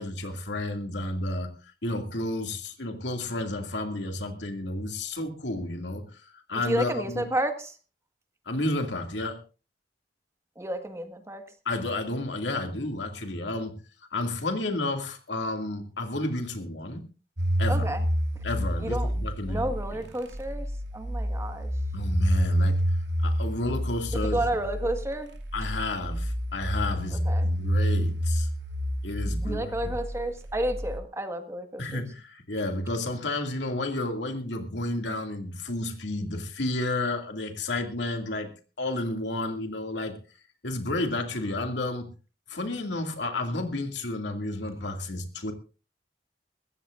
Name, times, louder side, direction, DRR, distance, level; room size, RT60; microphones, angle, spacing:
voice 1, 0.0-1.5 1.8-7.3 8.5-9.4 11.7-13.8 14.1-17.1 17.6-17.9 18.4-20.1 21.9-22.8 23.2-24.6 25.5-28.5 29.0-29.9 31.8-38.5 38.8-40.2 40.6-42.1 42.5-45.5, left 2 dB, 85° left, 5 dB, 2.3 m, -31 dB
voice 2, 6.6-7.7 10.6-11.4 17.7-18.0 18.8-19.1 19.5-20.6 20.9-21.7 24.3-25.3 27.3-27.5 29.4-32.0, right 1 dB, 15° right, 7 dB, 1.6 m, -31 dB
sound 1, 17.4-31.0, equal, 85° right, 2.4 m, -29 dB
22.0 x 15.5 x 2.5 m, 0.34 s
head